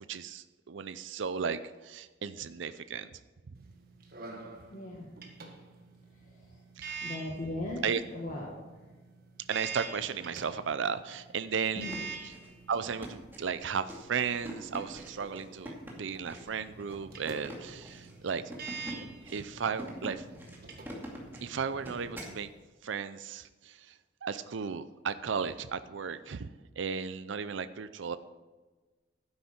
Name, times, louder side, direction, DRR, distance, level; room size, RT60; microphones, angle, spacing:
voice 1, 0.1-3.1 3.5-3.6 6.8-7.0 7.8-8.0 9.5-11.9 12.7-18.4 19.3-20.2 21.4-22.5 22.8-26.5 26.8-28.2, right 6 dB, 75° right, 13 dB, 0.5 m, -35 dB
sound 1, 3.5-22.1, right 4 dB, 55° right, 1.6 m, -47 dB
voice 2, 4.7-5.1 6.3-6.6 7.0-8.6 11.8-12.0, left 1 dB, 45° left, -3 dB, 1.7 m, -38 dB
sound 2, 11.7-22.4, equal, 10° right, 2.3 m, -45 dB
12.0 x 9.8 x 4.4 m, 1.3 s
head